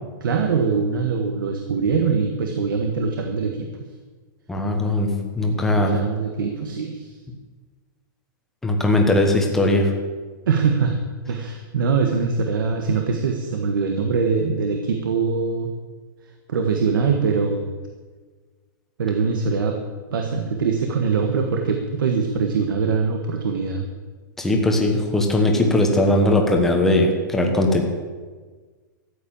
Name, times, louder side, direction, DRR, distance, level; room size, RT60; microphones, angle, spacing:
voice 1, 0.2-3.7 5.4-7.1 10.5-11.0 11.3-15.7 16.5-17.6 19.0-19.8 20.1-23.8, right 5 dB, 80° right, 4 dB, 1.6 m, -23 dB
voice 2, 4.5-5.9 8.6-9.9 24.4-27.8, left 1 dB, 5° left, 2 dB, 1.2 m, -19 dB
13.5 x 8.4 x 8.7 m, 1.4 s
supercardioid pair, 180°, 11 cm